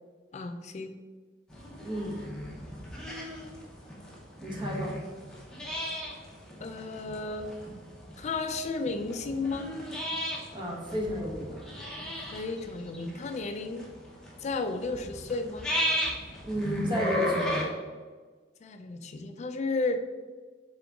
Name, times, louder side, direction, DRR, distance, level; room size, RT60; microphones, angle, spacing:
voice 1, 0.3-0.9 6.6-7.5 8.2-9.8 12.3-13.9 14.4-15.7 18.6-20.0, left 3 dB, 40° left, 8 dB, 0.4 m, -33 dB
sound 1, 1.5-17.6, equal, 5° left, 0.8 m, -35 dB
voice 2, 1.8-2.2 4.4-5.0 10.5-11.7 16.4-17.7, equal, 25° right, -2 dB, 0.9 m, -32 dB
3.8 x 3.7 x 3.5 m, 1.4 s
head